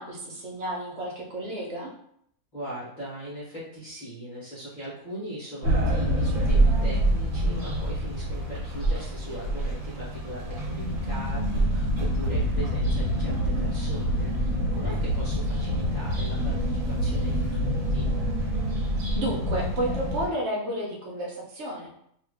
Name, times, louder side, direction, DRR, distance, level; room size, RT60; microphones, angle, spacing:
voice 1, 0.0-1.9 19.2-21.9, right 1 dB, 60° right, -1 dB, 1.0 m, -31 dB
voice 2, 2.5-18.1, equal, 35° left, -10 dB, 1.0 m, -40 dB
sound 1, 5.6-20.3, right 1 dB, 80° right, 1.3 m, -26 dB
2.7 x 2.5 x 3.4 m, 0.70 s
omnidirectional pair, 1.5 m